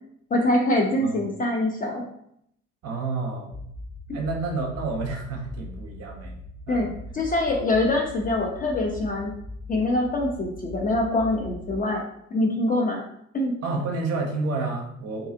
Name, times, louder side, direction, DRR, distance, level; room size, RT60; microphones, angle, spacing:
voice 1, 0.3-2.0 6.7-6.9 7.1-9.3 9.7-12.0 12.3-13.0 13.3-13.5, left 1 dB, 25° left, 0 dB, 0.4 m, -24 dB
voice 2, 2.8-3.7 4.1-6.4 6.7-6.9 13.6-15.3, right 3 dB, 40° right, 2 dB, 0.6 m, -30 dB
sound 1, 3.5-11.8, left 1 dB, 60° left, 0.8 m, -40 dB
2.7 x 2.3 x 2.5 m, 0.73 s
figure-of-eight pair, 45°, 38 cm